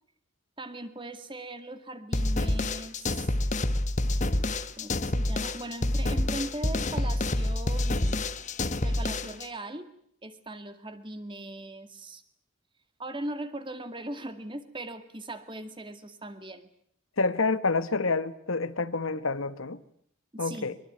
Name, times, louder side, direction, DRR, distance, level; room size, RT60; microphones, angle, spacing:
voice 1, 0.6-3.2 4.5-8.2 8.8-9.9 10.2-12.2 13.0-16.7 20.3-20.8, right 1 dB, 25° right, 9 dB, 2.1 m, -39 dB
sound 1, 2.1-9.5, left 1 dB, 35° left, 1.2 m, -28 dB
voice 2, 17.2-19.8 20.4-20.7, left 3 dB, 75° left, 13 dB, 1.3 m, -28 dB
23.5 x 23.5 x 9.5 m, 0.68 s
head